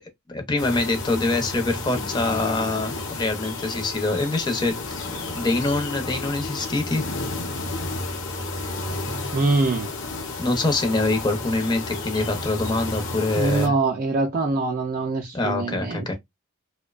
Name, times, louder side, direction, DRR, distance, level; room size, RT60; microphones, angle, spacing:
voice 1, 0.3-7.0 10.4-13.7 15.3-16.1, left 2 dB, 20° left, 0.6 m, -25 dB
sound 1, 0.6-13.7, left 3 dB, 65° left, 0.7 m, -32 dB
voice 2, 9.3-9.9 13.4-16.1, right 3 dB, 40° right, 0.4 m, -23 dB
2.6 x 2.1 x 2.4 m
head